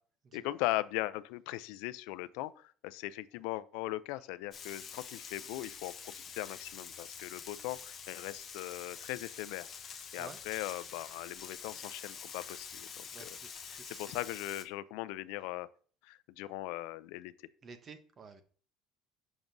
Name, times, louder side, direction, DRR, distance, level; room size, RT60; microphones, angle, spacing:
voice 1, 0.3-9.7 10.1-13.3 13.7-15.7 16.1-17.3, left 17 dB, 85° left, 16 dB, 0.3 m, -39 dB
Frying (food), 4.5-14.6, left 6 dB, 25° left, 0.7 m, -47 dB
voice 2, 13.1-14.1 17.6-18.4, right 5 dB, 25° right, 10 dB, 0.7 m, -52 dB
7.0 x 6.0 x 2.6 m, 0.43 s
cardioid pair, 175°, 0 cm